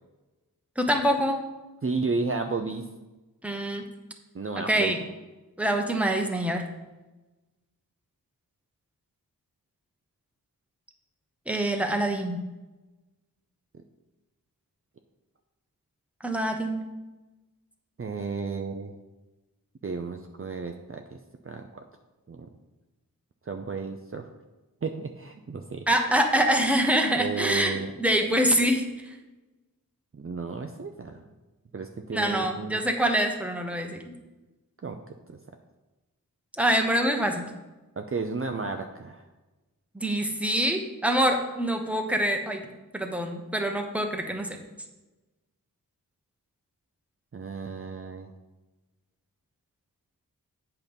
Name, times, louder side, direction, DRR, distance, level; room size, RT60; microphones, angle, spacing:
voice 1, 0.8-1.4 3.4-3.8 4.7-5.0 5.6-6.6 11.5-12.4 16.2-16.9 25.9-28.8 32.1-34.1 36.6-37.4 39.9-42.6 42.9-44.5, right 1 dB, 5° right, 3 dB, 1.2 m, -25 dB
voice 2, 1.8-2.8 4.3-4.9 18.0-18.9 19.8-21.2 21.4-21.8 22.3-22.5 23.4-24.3 24.8-25.8 27.2-27.9 30.1-31.3 31.7-32.8 34.8-35.0 35.3-35.4 38.0-39.3 47.3-48.3, right 4 dB, 35° right, 4 dB, 0.6 m, -33 dB
8.4 x 5.8 x 5.3 m, 1.1 s
wide cardioid pair, 65°, 36 cm